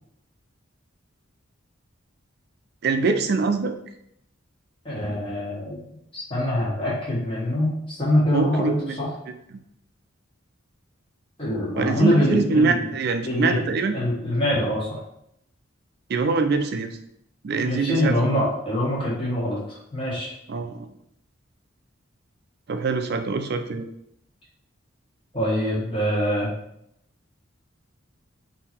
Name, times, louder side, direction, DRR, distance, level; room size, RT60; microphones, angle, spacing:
voice 1, 2.8-3.8 8.3-9.0 9.5-9.6 11.8-14.0 16.1-17.0 17.4-18.4 20.5-20.9 22.7-23.9, right 4 dB, 50° right, 7 dB, 0.4 m, -24 dB
voice 2, 4.8-5.8 6.1-9.1 11.4-12.9 13.2-13.6 13.9-15.0 17.6-20.3 25.3-26.5, left 1 dB, 25° left, -7 dB, 1.5 m, -24 dB
3.7 x 2.8 x 4.3 m, 0.77 s
head